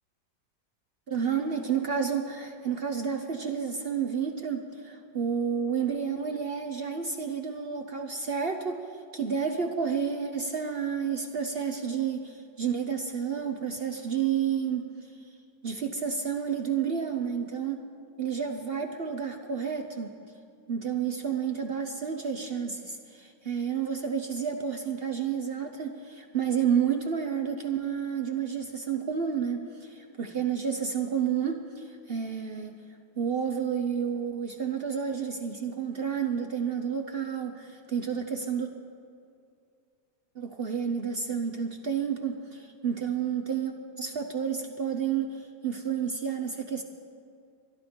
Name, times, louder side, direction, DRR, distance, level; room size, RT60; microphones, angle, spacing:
voice 1, 1.1-8.8 9.1-14.9 15.6-17.8 18.2-20.2 20.7-32.7 33.2-38.7 40.4-46.8, right 7 dB, 65° right, 5 dB, 0.5 m, -30 dB
22.0 x 11.5 x 5.1 m, 2.5 s
omnidirectional pair, 2.1 m